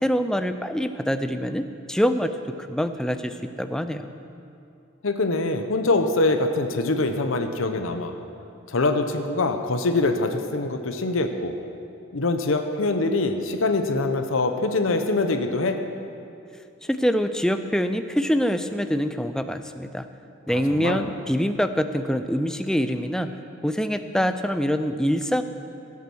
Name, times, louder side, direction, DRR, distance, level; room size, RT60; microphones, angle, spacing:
voice 1, 0.0-2.4 2.7-4.1 16.8-20.1 20.5-23.3 23.6-25.4, equal, 5° left, 9 dB, 0.4 m, -25 dB
voice 2, 5.0-8.1 8.7-11.5 12.1-15.8 20.7-21.0, left 2 dB, 70° left, 7 dB, 0.8 m, -24 dB
16.0 x 8.4 x 6.2 m, 2.6 s
head